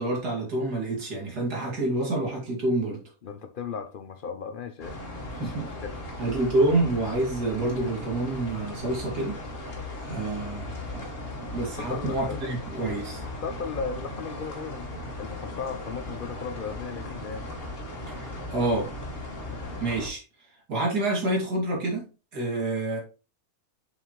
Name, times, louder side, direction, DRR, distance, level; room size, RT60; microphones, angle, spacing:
voice 1, 0.0-3.0 5.4-5.7 6.2-9.7 10.0-11.1 11.5-13.2 18.1-18.9 19.8-20.2 20.7-23.0, right 2 dB, 80° right, 3.0 m, -28 dB
voice 2, 3.2-5.0 5.3-5.6 5.8-6.0 11.8-12.4 13.4-14.9 15.2-17.5, left 6 dB, 70° left, 0.5 m, -36 dB
sound 1, 4.8-20.1, left 1 dB, 40° left, 1.7 m, -37 dB
7.3 x 5.7 x 3.1 m
omnidirectional pair, 1.7 m